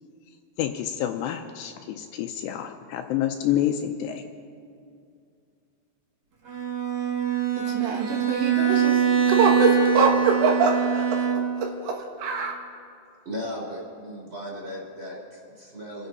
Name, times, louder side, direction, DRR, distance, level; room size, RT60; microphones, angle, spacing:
voice 1, 0.6-4.2, left 11 dB, 80° left, 6 dB, 2.6 m, -28 dB
Bowed string instrument, 6.5-11.7, right 7 dB, 50° right, 1.8 m, -23 dB
voice 2, 7.6-12.6, right 4 dB, 75° right, 1 dB, 3.7 m, -24 dB
voice 3, 13.2-16.1, equal, 15° right, -3 dB, 2.6 m, -36 dB
28.0 x 10.5 x 4.1 m, 2.4 s
omnidirectional pair, 5.3 m